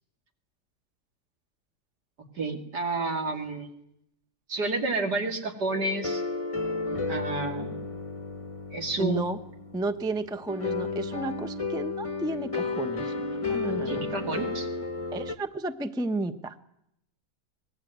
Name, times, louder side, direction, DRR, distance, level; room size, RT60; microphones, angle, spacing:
voice 1, 2.4-3.7 4.5-6.2 7.1-7.9 8.7-9.3 13.9-14.7, right 3 dB, 70° right, 3 dB, 3.2 m, -30 dB
sound 1, 5.7-15.4, left 3 dB, 25° left, 1.0 m, -33 dB
voice 2, 9.0-9.4 9.7-13.1 13.5-14.0 15.1-16.6, right 2 dB, 5° right, 9 dB, 0.7 m, -32 dB
24.0 x 20.5 x 9.4 m, 0.79 s
omnidirectional pair, 1.8 m